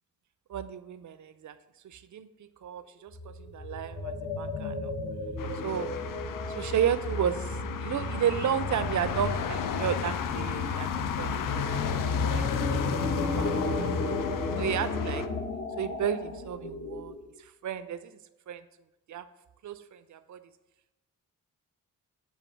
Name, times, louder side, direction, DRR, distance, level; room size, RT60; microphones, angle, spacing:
voice 1, 0.5-1.6 1.8-4.9 5.6-5.9 6.6-12.7 13.2-14.0 14.5-15.2 15.8-18.2 18.5-18.6 19.1-19.3 19.6-20.5, right 9 dB, 55° right, 12 dB, 0.5 m, -33 dB
sound 1, 3.1-17.3, left 2 dB, 45° left, 1.1 m, -33 dB
sound 2, 5.4-15.3, left 8 dB, 65° left, 0.5 m, -34 dB
7.1 x 2.7 x 5.8 m, 0.96 s
supercardioid pair, 45°, 35 cm